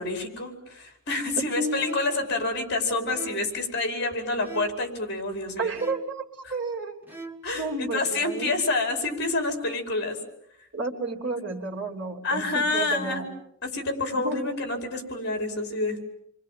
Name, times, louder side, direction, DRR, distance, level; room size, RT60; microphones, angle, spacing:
voice 1, 0.0-5.7 6.4-6.5 7.4-10.2 12.2-13.2 13.6-16.1, left 2 dB, 50° left, 5 dB, 5.1 m, -28 dB
voice 2, 1.4-2.0 5.6-7.0 7.5-8.6 10.7-13.3 14.1-14.5, right 2 dB, 55° right, 1 dB, 3.3 m, -31 dB
sound 1, 1.8-2.3 3.1-3.6 4.4-4.9 5.7-6.2 7.0-7.6, right 3 dB, 10° right, 1.9 m, -42 dB
29.0 x 24.0 x 7.6 m, 0.73 s
head